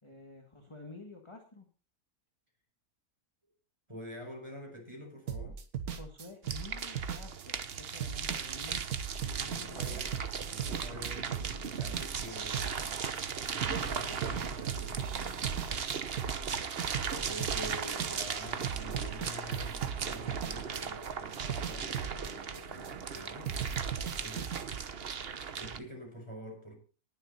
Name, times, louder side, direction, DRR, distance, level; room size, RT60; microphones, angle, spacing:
voice 1, 0.0-1.7 5.9-10.0, left 3 dB, 15° left, 1.7 m, -50 dB
voice 2, 3.9-5.6 9.3-10.2 10.5-13.0 13.5-15.5 17.0-23.6 24.2-24.6 25.5-26.8, equal, 15° right, 5.1 m, -46 dB
sound 1, 5.3-13.9 14.2-18.4 18.6-21.1 21.3-23.2 23.5-24.6, right 7 dB, 60° right, 1.6 m, -38 dB
sound 2, 6.4-25.8, right 6 dB, 45° right, 0.9 m, -37 dB
19.0 x 7.4 x 4.0 m
omnidirectional pair, 1.8 m